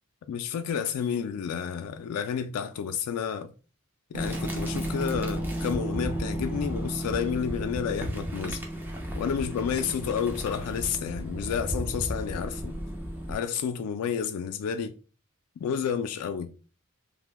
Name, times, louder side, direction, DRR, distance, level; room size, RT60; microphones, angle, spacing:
voice 1, 0.3-3.5 4.1-8.6 9.2-12.8 13.3-14.9 15.6-16.5, left 7 dB, 80° left, 0.3 m, -30 dB
sound 1, 4.1-13.3, equal, 10° right, 0.5 m, -33 dB
2.8 x 2.0 x 3.3 m
head